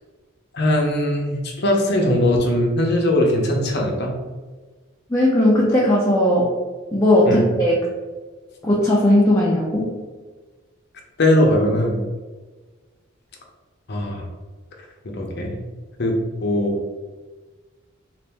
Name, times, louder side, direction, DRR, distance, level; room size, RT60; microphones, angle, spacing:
voice 1, 0.5-4.1 7.3-7.5 11.2-12.0 13.9-14.3 15.0-15.5 16.0-16.1 16.4-16.8, left 1 dB, 55° left, 1 dB, 0.7 m, -20 dB
voice 2, 5.1-6.5 6.9-7.8 8.6-9.9, left 1 dB, 15° left, -6 dB, 0.5 m, -17 dB
3.9 x 2.5 x 3.4 m, 1.3 s
head